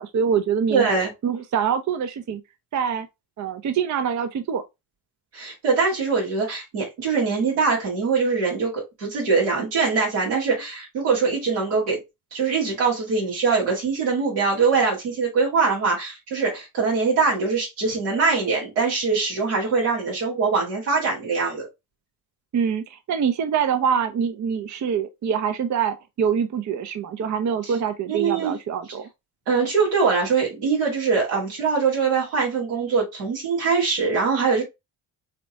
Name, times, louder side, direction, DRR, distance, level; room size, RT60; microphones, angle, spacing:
voice 1, 0.0-0.9 1.2-2.4 2.7-3.1 3.4-4.6 22.5-29.1, right 7 dB, 40° right, 0.6 m, -25 dB
voice 2, 0.7-1.1 5.3-12.0 12.3-21.7 27.6-27.7 28.1-28.5 29.5-34.6, right 4 dB, 85° right, 2.3 m, -22 dB
4.2 x 3.0 x 2.7 m
hypercardioid pair, 45°, 49 cm